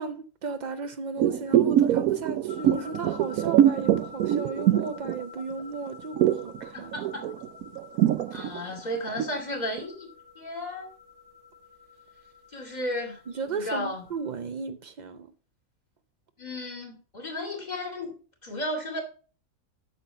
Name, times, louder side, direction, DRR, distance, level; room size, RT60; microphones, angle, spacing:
voice 1, 0.0-6.9 8.3-8.5 13.3-15.3, right 4 dB, 60° right, 0.4 m, -35 dB
sound 1, 1.2-5.6 5.9-9.4 9.8-9.9, right 11 dB, 85° right, 1.1 m, -23 dB
sound 2, 2.5-14.4, left 5 dB, 55° left, 1.3 m, -48 dB
voice 2, 6.7-7.3 8.3-10.1 10.4-10.9 12.5-13.2 13.5-14.0 16.4-18.1 18.4-19.0, left 1 dB, 30° left, 2.5 m, -33 dB
8.5 x 6.6 x 5.6 m
omnidirectional pair, 1.5 m